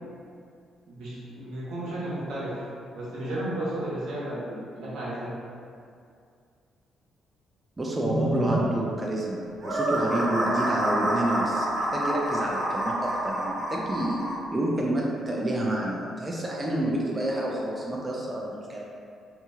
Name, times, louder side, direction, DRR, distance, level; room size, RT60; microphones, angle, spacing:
voice 1, 0.9-2.6 2.9-5.4 8.0-8.6, right 1 dB, 80° right, -8 dB, 0.9 m, -32 dB
voice 2, 7.8-18.8, right 1 dB, 20° right, -3 dB, 0.3 m, -29 dB
sound 1, 9.6-14.3, right 1 dB, 45° right, 1.3 m, -27 dB
2.9 x 2.7 x 2.3 m, 2.3 s
cardioid pair, 90°, 0 cm